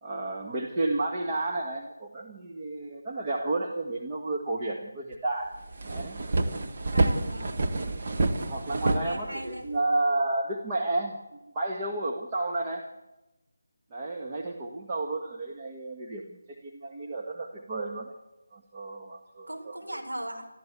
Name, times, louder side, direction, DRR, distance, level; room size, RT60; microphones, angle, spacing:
voice 1, 0.0-5.6 5.9-6.2 8.4-12.9 13.9-18.1 18.5-20.0, right 2 dB, 25° right, -1 dB, 1.6 m, -32 dB
sound 1, 5.1-5.2 5.5-9.8, right 2 dB, 40° right, 1.7 m, -28 dB
voice 2, 6.9-7.6 8.8-9.7 19.5-20.5, right 1 dB, 85° right, 3 dB, 4.9 m, -38 dB
28.0 x 14.0 x 8.3 m, 1.0 s
figure-of-eight pair, 160°, 0 cm